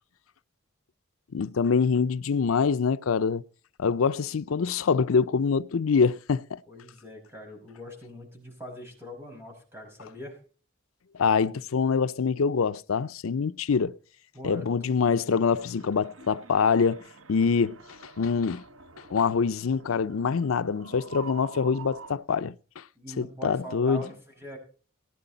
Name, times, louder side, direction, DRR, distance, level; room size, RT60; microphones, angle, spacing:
voice 1, 1.3-3.4 3.8-6.6 11.2-14.0 14.4-17.0 17.3-18.6 19.1-22.8 23.2-24.0, left 5 dB, 90° left, 0.5 m, -25 dB
voice 2, 6.7-10.4 14.3-14.9 23.0-24.6, left 1 dB, 10° right, 5.4 m, -42 dB
sound 1, 15.5-22.1, right 4 dB, 80° right, 1.1 m, -47 dB
18.5 x 9.8 x 3.9 m
head